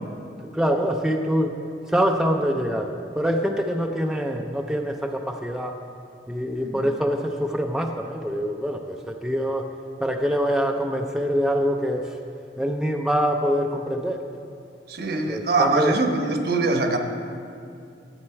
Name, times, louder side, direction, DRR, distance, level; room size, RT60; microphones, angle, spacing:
voice 1, 0.4-1.6 1.9-5.8 6.3-9.7 10.0-12.1 12.6-14.2 15.3-15.9, equal, 5° right, 2 dB, 0.5 m, -25 dB
voice 2, 14.9-17.0, right 3 dB, 60° right, 4 dB, 1.1 m, -23 dB
13.0 x 8.6 x 4.4 m, 2.5 s
head